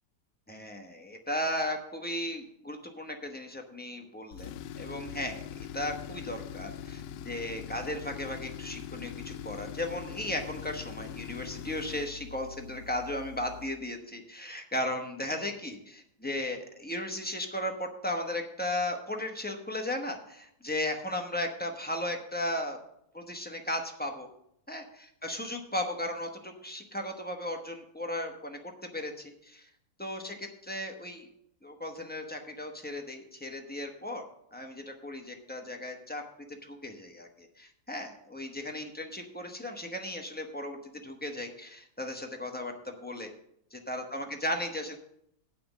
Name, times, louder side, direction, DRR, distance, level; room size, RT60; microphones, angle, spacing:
voice 1, 0.5-22.8 23.1-24.3 24.7-24.9 25.2-29.7 30.0-30.3 30.6-31.3 31.6-34.2 34.5-36.2 36.5-43.3 43.7-45.0, left 1 dB, 10° left, 3 dB, 0.7 m, -36 dB
Tools, 4.3-13.8, left 10 dB, 90° left, 1.2 m, -42 dB
8.5 x 5.8 x 8.1 m, 0.74 s
omnidirectional pair, 1.8 m